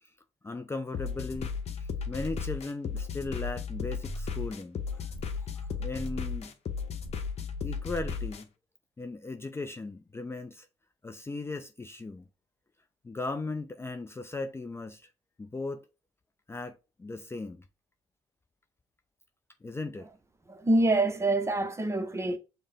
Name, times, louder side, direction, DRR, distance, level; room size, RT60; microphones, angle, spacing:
voice 1, 0.4-1.5 1.8-5.1 5.4-6.5 7.6-8.5 9.0-10.7 11.0-12.3 13.0-15.0 15.4-15.9 16.5-17.6 19.6-20.1, left 3 dB, 20° left, 0.4 m, -37 dB
sound 1, 0.9-8.4, left 5 dB, 50° left, 0.8 m, -35 dB
voice 2, 20.5-22.4, right 2 dB, 20° right, 0.8 m, -26 dB
5.3 x 2.1 x 3.3 m
hypercardioid pair, 55°, 13 cm